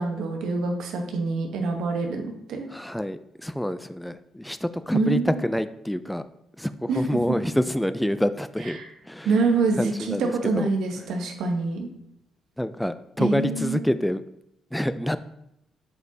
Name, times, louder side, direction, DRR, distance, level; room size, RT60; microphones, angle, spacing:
voice 1, 0.0-2.7 4.9-5.5 6.9-7.2 8.7-8.9 9.2-11.9 13.2-13.8, right 3 dB, 80° right, 3 dB, 1.1 m, -26 dB
voice 2, 2.7-6.2 6.6-8.8 9.1-9.3 9.8-10.7 12.6-14.2 14.7-15.2, equal, 5° left, 12 dB, 0.4 m, -27 dB
7.8 x 5.1 x 2.8 m, 0.81 s
cardioid pair, 90°, 0 cm